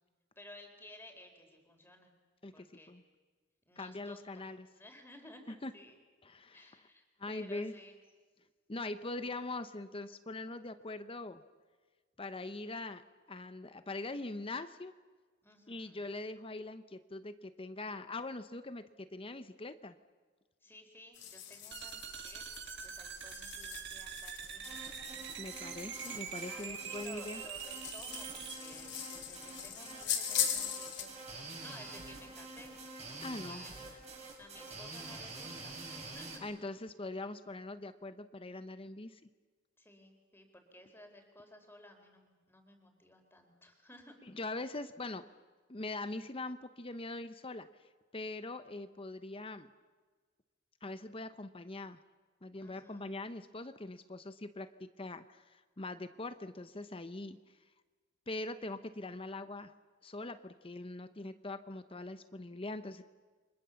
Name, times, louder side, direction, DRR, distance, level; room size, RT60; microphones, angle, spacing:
voice 1, 0.4-2.1 2.5-2.9 3.7-4.4 4.7-6.0 6.5-8.0 15.4-16.0 20.6-25.2 26.5-31.2 31.6-32.8 33.2-36.4 39.8-44.2 52.6-53.1, left 1 dB, 10° left, 4 dB, 4.3 m, -56 dB
voice 2, 2.4-3.0 3.8-4.7 5.5-5.7 6.3-6.7 7.2-7.7 8.7-11.4 12.2-14.9 15.7-20.0 25.4-27.4 33.2-33.6 36.4-39.2 44.2-45.3 45.7-47.7 48.1-49.7 50.8-52.0 52.4-57.4 58.3-59.7 60.0-63.0, left 2 dB, 30° left, 11 dB, 0.9 m, -42 dB
sound 1, 21.1-31.1, left 9 dB, 60° left, 3.2 m, -41 dB
sound 2, 21.7-28.6, right 8 dB, 60° right, 1.7 m, -44 dB
sound 3, 24.4-36.4, right 3 dB, 35° right, 7.9 m, -47 dB
29.5 x 25.0 x 7.1 m, 1.4 s
head